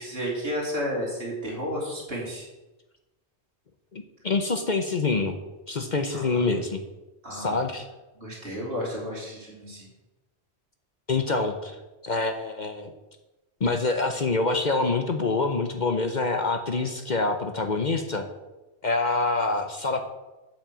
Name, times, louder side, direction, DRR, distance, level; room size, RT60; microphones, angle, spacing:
voice 1, 0.0-2.5 6.1-6.4 7.2-7.6 8.2-9.9, equal, 60° right, -3 dB, 3.5 m, -32 dB
voice 2, 3.9-5.4 5.7-6.8 7.3-7.9 11.1-11.8 12.0-12.9 13.6-18.2 18.8-20.0, left 3 dB, 45° left, 6 dB, 0.9 m, -26 dB
8.5 x 6.2 x 7.4 m, 1.1 s
omnidirectional pair, 1.1 m